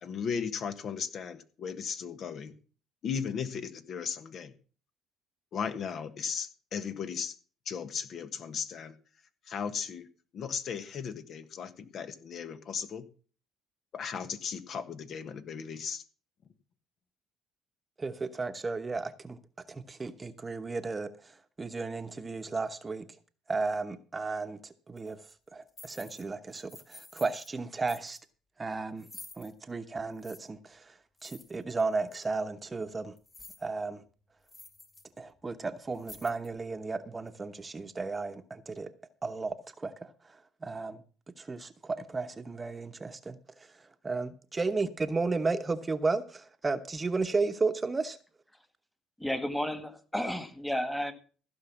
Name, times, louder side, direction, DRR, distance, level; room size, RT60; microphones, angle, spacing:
voice 1, 0.0-2.5 3.0-4.5 5.5-7.4 7.6-8.9 9.4-10.1 10.3-13.0 13.9-16.0, left 6 dB, 55° left, 1.3 m, -36 dB
voice 2, 18.0-19.4 19.7-23.1 23.5-25.2 25.5-28.2 28.6-29.1 29.4-30.9 31.2-33.1 33.6-34.0 35.2-38.9 39.2-41.0 41.4-43.7 44.0-48.2, right 3 dB, 25° right, 1.0 m, -34 dB
sound 1, 25.0-25.1 25.7-26.2 26.5-27.5 27.9-28.2 29.0-29.5 30.2-30.4 31.2-31.8 32.1-32.2 33.2-33.7 34.0-34.1 34.5-35.0 35.4-35.5 35.9-36.6, left 2 dB, 20° left, 2.2 m, -50 dB
voice 3, 49.2-51.1, left 1 dB, 5° left, 1.8 m, -32 dB
15.5 x 5.5 x 7.2 m
supercardioid pair, 90°, 0 cm